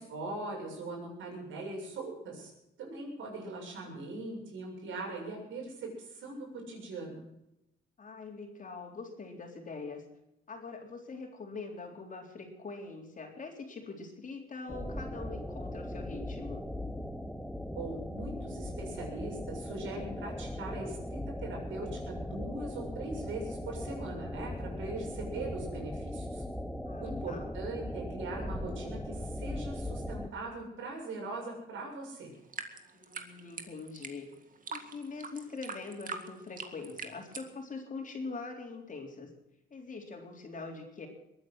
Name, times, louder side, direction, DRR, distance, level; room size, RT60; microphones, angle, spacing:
voice 1, 0.0-2.5 2.8-7.2 17.8-26.4 27.0-32.3, right 2 dB, 80° right, 0 dB, 7.2 m, -41 dB
voice 2, 8.0-10.0 10.5-16.6 26.9-27.5 32.9-34.3 34.7-39.3 39.7-41.1, left 4 dB, 40° left, 3 dB, 3.8 m, -43 dB
sound 1, 14.7-30.3, left 1 dB, ahead, 1.3 m, -39 dB
sound 2, 32.3-37.5, right 5 dB, 45° right, 2.1 m, -42 dB
21.5 x 9.7 x 6.3 m, 0.86 s
cardioid pair, 90°, 20 cm